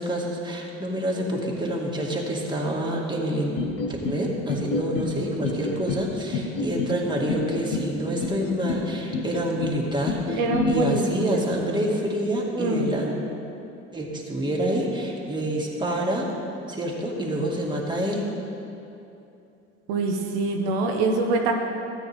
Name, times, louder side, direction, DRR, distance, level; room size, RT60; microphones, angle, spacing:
voice 1, 0.0-3.5 3.9-13.1 13.9-16.3 16.7-18.3, equal, 10° right, -2 dB, 2.0 m, -27 dB
sound 1, 3.6-4.2 4.5-5.1 5.4-6.0 6.3-6.9 7.3-7.9 8.2-8.8 9.1-9.7 10.1-10.7, left 4 dB, 80° left, 1.3 m, -28 dB
voice 2, 10.4-11.4 12.5-12.9 19.9-21.5, right 3 dB, 75° right, 1 dB, 1.0 m, -24 dB
13.5 x 8.9 x 3.6 m, 2.8 s
hypercardioid pair, 65°, 37 cm